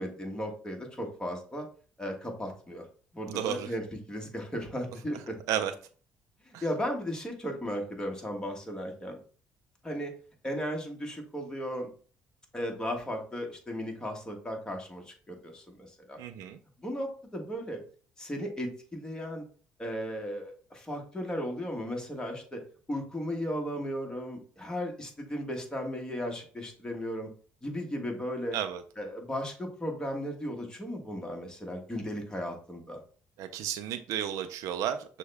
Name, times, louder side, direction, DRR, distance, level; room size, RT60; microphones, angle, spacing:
voice 1, 0.0-1.7 2.0-2.9 3.1-5.4 6.4-9.2 9.8-10.1 10.4-11.9 12.5-16.2 16.8-17.8 18.2-19.5 19.8-22.6 22.9-27.3 27.6-28.6 29.0-33.0, equal, 15° left, 1 dB, 1.2 m, -35 dB
voice 2, 3.3-3.7 5.5-5.7 6.5-6.6 16.2-16.6 28.5-28.8 33.4-35.2, right 10 dB, 80° right, 9 dB, 0.4 m, -32 dB
6.1 x 2.2 x 3.4 m, 0.42 s
cardioid pair, 90°, 6 cm